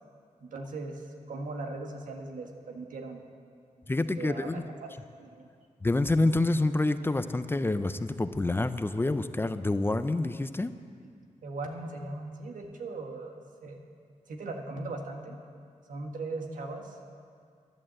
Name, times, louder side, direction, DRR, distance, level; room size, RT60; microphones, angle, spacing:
voice 1, 0.4-3.2 4.2-4.6 5.2-5.5 11.4-13.4 13.6-13.8 14.3-15.4 15.9-17.1, right 3 dB, 90° right, 3 dB, 1.6 m, -39 dB
voice 2, 3.9-4.6 5.8-10.7, left 2 dB, 15° left, 11 dB, 0.5 m, -27 dB
11.5 x 11.0 x 7.6 m, 2.2 s
wide cardioid pair, 120°, 13 cm